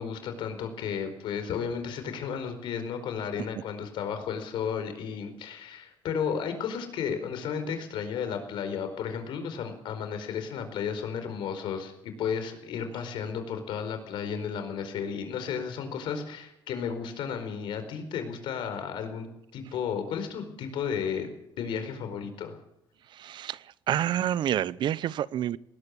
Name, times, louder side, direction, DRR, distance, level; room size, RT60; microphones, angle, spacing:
voice 1, 0.0-19.3 19.5-21.3 21.6-22.6, left 7 dB, 80° left, 8 dB, 4.6 m, -33 dB
voice 2, 23.2-23.6 23.9-25.6, right 11 dB, 65° right, 20 dB, 0.7 m, -28 dB
19.5 x 18.5 x 8.4 m, 0.80 s
cardioid pair, 105°, 8 cm